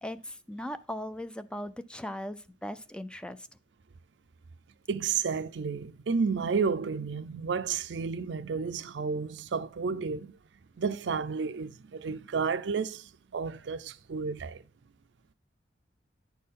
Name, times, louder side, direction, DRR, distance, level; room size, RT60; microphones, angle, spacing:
voice 1, 0.0-3.5, left 1 dB, 5° left, 0.4 m, -38 dB
voice 2, 4.9-10.4 10.8-14.6, right 5 dB, 75° right, 0.5 m, -31 dB
10.0 x 4.3 x 3.7 m
head